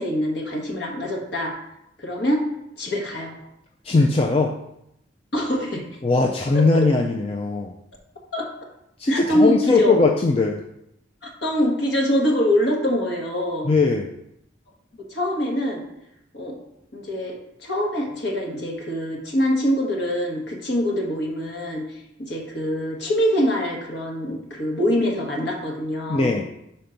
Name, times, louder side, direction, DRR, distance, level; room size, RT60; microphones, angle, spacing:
voice 1, 0.0-1.5 2.0-2.4 2.8-3.4 5.3-5.8 6.7-6.9 8.3-8.5 9.1-9.9 11.4-13.7 15.1-15.8 16.3-16.6 16.9-26.3, equal, 60° left, 0 dB, 1.5 m, -24 dB
voice 2, 3.8-4.5 6.0-7.7 9.0-10.6 13.6-14.1 26.1-26.5, left 3 dB, 30° left, 1 dB, 0.4 m, -20 dB
5.8 x 4.2 x 5.1 m, 0.81 s
head